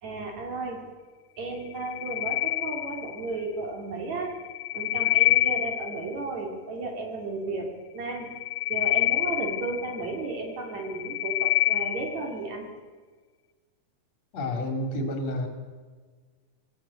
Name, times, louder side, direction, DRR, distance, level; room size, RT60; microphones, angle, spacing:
voice 1, 0.0-0.9 1.4-4.4 4.7-8.3 8.7-12.7, right 3 dB, 65° right, 2 dB, 4.1 m, -34 dB
sound 1, 1.7-3.4 4.3-6.2 8.2-10.3 10.7-12.3, left 14 dB, 80° left, 2.2 m, -26 dB
voice 2, 14.3-15.5, left 1 dB, 60° left, 3 dB, 3.9 m, -29 dB
20.0 x 16.0 x 8.3 m, 1.5 s
omnidirectional pair, 3.5 m